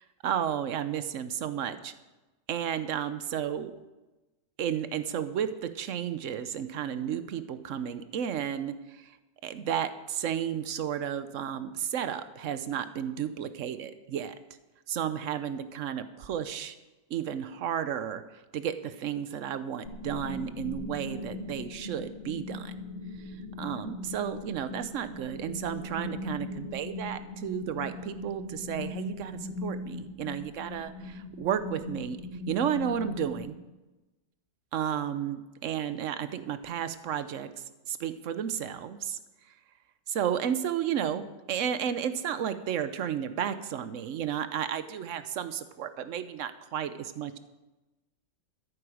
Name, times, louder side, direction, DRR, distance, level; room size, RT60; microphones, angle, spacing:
voice 1, 0.2-1.9 2.5-3.7 4.6-9.2 9.4-14.3 14.9-16.8 17.1-22.7 23.2-30.9 31.4-32.2 32.5-33.6 34.7-39.2 40.1-47.4, right 9 dB, 60° right, 11 dB, 0.9 m, -33 dB
sound 1, 19.8-33.5, left 2 dB, 35° left, 2.6 m, -39 dB
13.5 x 11.0 x 4.9 m, 1.1 s
omnidirectional pair, 1.8 m